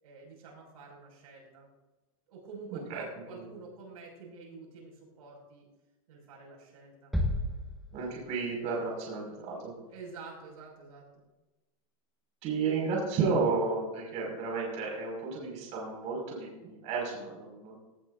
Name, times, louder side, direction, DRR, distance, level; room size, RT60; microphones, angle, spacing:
voice 1, 0.0-1.7 2.3-5.7 6.1-7.1 9.9-11.0, right 4 dB, 75° right, -2 dB, 5.9 m, -48 dB
voice 2, 2.7-3.0 3.4-3.5 7.9-9.7 12.4-17.8, right 4 dB, 40° right, -2 dB, 5.6 m, -32 dB
sound 1, 7.1-8.5, left 1 dB, ahead, 1.5 m, -32 dB
18.5 x 17.5 x 2.6 m, 1.1 s
supercardioid pair, 145°, 19 cm